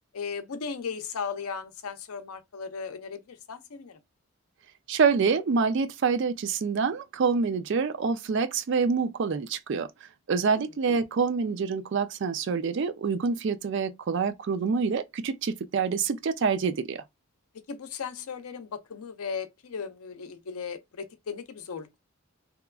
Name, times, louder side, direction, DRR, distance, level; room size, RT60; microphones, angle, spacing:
voice 1, 0.1-4.0 10.5-10.7 17.7-22.0, left 6 dB, 85° left, 0.5 m, -36 dB
voice 2, 4.9-9.9 10.3-17.0, right 5 dB, 55° right, 0.4 m, -26 dB
2.9 x 2.3 x 2.3 m
head